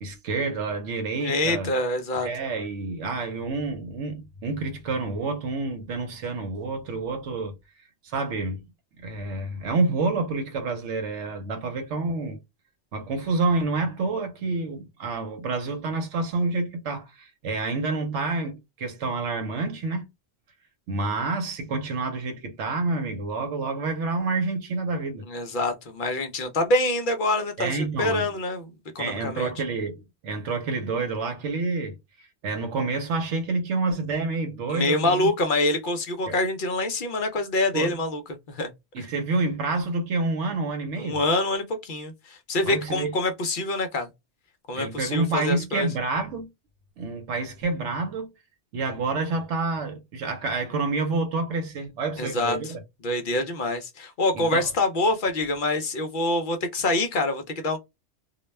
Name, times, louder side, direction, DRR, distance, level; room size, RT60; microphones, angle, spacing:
voice 1, 0.0-1.7 2.2-7.5 8.0-8.6 9.0-12.4 12.9-20.1 20.9-25.2 27.6-28.3 29.0-35.3 36.3-36.4 37.7-37.9 38.9-41.2 42.6-43.1 44.7-46.5 47.0-48.3 48.7-52.8 54.3-54.7, right 3 dB, 80° right, 1.0 m, -28 dB
voice 2, 1.2-2.3 25.2-29.5 34.7-38.2 38.5-38.7 41.0-44.1 44.7-45.9 52.2-52.7 53.0-57.8, left 2 dB, 55° left, 0.6 m, -26 dB
2.3 x 2.1 x 3.1 m
omnidirectional pair, 1.2 m